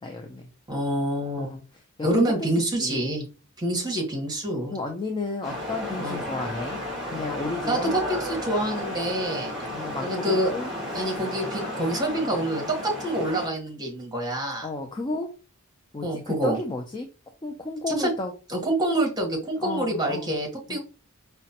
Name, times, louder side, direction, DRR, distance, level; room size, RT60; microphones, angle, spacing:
voice 1, 0.0-0.5 1.4-1.6 2.0-3.0 4.7-8.0 9.5-10.7 14.6-15.3 15.9-17.1 17.4-18.3 19.6-20.3 20.7-20.8, left 2 dB, 20° left, 2 dB, 0.4 m, -33 dB
voice 2, 0.7-1.5 2.0-3.2 3.6-4.8 6.0-6.2 7.7-9.5 10.0-10.5 10.9-14.7 16.0-16.6 17.9-18.1 18.5-20.8, right 1 dB, 20° right, 0 dB, 1.2 m, -26 dB
sound 1, 5.4-13.5, left 1 dB, ahead, 1.5 m, -33 dB
4.9 x 2.2 x 2.8 m, 0.33 s
head